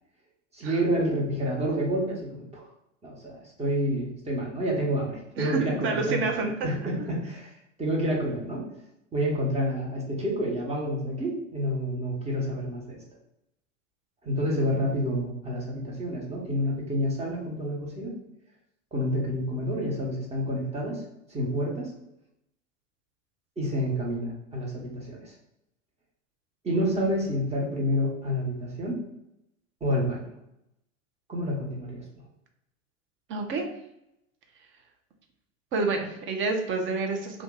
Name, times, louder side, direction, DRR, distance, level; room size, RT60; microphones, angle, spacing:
voice 1, 0.5-2.6 3.0-8.6 9.1-13.0 14.2-18.1 18.9-21.0 21.3-21.9 23.6-25.3 26.6-29.0 29.8-30.3 31.3-32.2, equal, 15° right, -2 dB, 1.1 m, -29 dB
voice 2, 5.4-6.7 33.3-33.7 35.7-37.4, right 3 dB, 30° right, 3 dB, 0.7 m, -28 dB
2.5 x 2.4 x 3.8 m, 0.83 s
hypercardioid pair, 90°, 38 cm